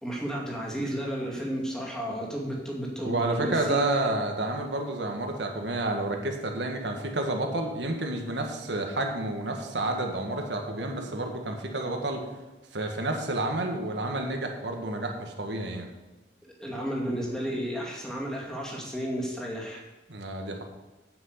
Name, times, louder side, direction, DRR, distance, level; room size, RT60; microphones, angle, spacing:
voice 1, 0.0-4.1 16.6-19.8, equal, 5° left, -3 dB, 2.4 m, -32 dB
voice 2, 3.0-12.2 12.7-15.9 20.1-20.6, right 2 dB, 75° right, 3 dB, 1.7 m, -30 dB
8.7 x 6.3 x 7.9 m, 1.1 s
head